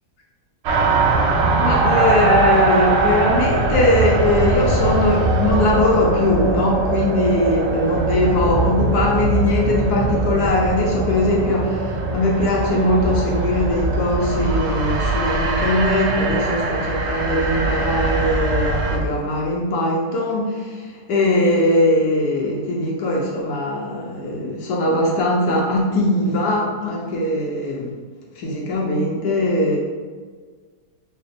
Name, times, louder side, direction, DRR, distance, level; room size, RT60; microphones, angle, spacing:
sound 1, 0.6-19.0, right 2 dB, 90° right, 0.5 m, -21 dB
voice 1, 1.6-27.9 28.4-29.8, left 1 dB, 80° left, -2 dB, 1.2 m, -20 dB
3.3 x 2.3 x 3.8 m, 1.5 s
omnidirectional pair, 1.8 m